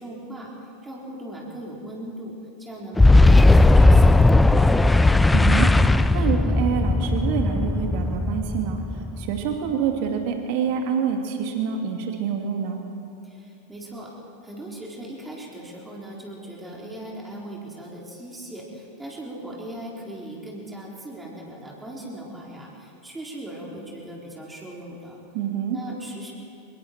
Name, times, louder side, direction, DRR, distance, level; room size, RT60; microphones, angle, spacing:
voice 1, 0.0-4.9 13.2-14.2 14.4-25.2 25.7-26.3, right 1 dB, 10° right, -3 dB, 4.1 m, -39 dB
Boom, 3.0-9.5, left 2 dB, 5° left, 0.5 m, -17 dB
voice 2, 5.3-5.7 6.1-8.8 9.2-12.8 25.3-25.8, right 7 dB, 50° right, 3 dB, 2.6 m, -26 dB
25.5 x 22.5 x 4.5 m, 2.6 s
figure-of-eight pair, 85°, 0 cm